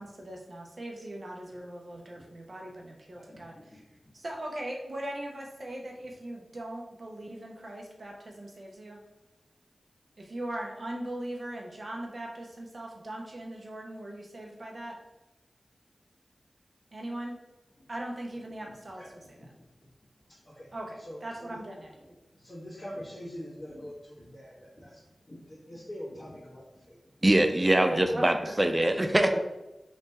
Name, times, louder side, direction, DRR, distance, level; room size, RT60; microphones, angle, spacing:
voice 1, 0.0-3.8 4.1-9.0 10.2-15.0 16.9-17.4 17.9-19.4 20.7-21.9 27.8-28.5, right 1 dB, 55° right, 0 dB, 0.8 m, -39 dB
voice 2, 3.1-3.7 19.0-19.1 20.5-20.7 21.0-21.2 21.5-21.6 22.3-25.0 25.3-27.0 29.0-29.4, equal, 30° left, -10 dB, 1.2 m, -42 dB
voice 3, 27.2-29.4, right 1 dB, 25° right, 6 dB, 0.4 m, -23 dB
3.1 x 2.8 x 3.4 m, 1.0 s
cardioid pair, 45°, 0 cm